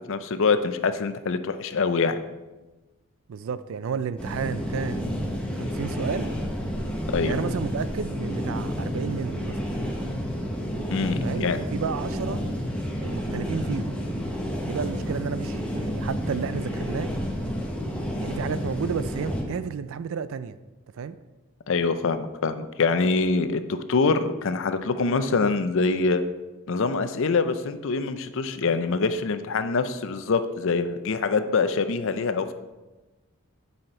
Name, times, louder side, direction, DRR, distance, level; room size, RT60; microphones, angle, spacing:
voice 1, 0.1-2.2 7.1-7.3 10.9-11.6 21.7-26.3 26.7-32.5, left 4 dB, 60° left, 10 dB, 0.5 m, -24 dB
voice 2, 3.3-5.1 5.5-6.3 7.2-9.5 11.2-12.4 13.0-14.0 14.7-17.1 18.2-20.6 20.9-21.2, right 6 dB, 65° right, 14 dB, 0.4 m, -32 dB
sound 1, 4.2-19.4, equal, 5° left, 1.1 m, -30 dB
7.9 x 5.7 x 4.3 m, 1.1 s
head